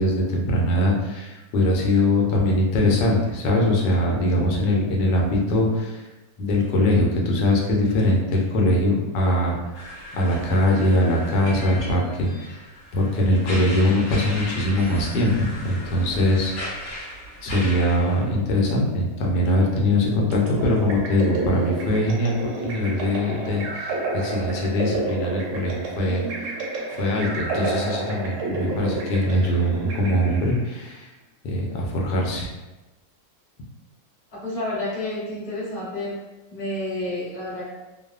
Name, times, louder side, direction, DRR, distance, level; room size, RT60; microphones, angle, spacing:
voice 1, 0.0-6.0 6.4-9.6 10.1-12.6 12.9-15.3 15.6-17.1 17.4-26.5 26.9-31.1 31.4-32.5, left 1 dB, 80° left, -1 dB, 1.2 m, -22 dB
sound 1, 9.7-18.2, left 1 dB, 55° left, 1.0 m, -37 dB
sound 2, 20.3-30.7, right 2 dB, 70° right, 0.8 m, -30 dB
voice 2, 34.3-36.2 36.5-37.6, left 1 dB, 30° left, -10 dB, 1.0 m, -30 dB
3.0 x 2.0 x 2.3 m, 1.1 s
omnidirectional pair, 1.8 m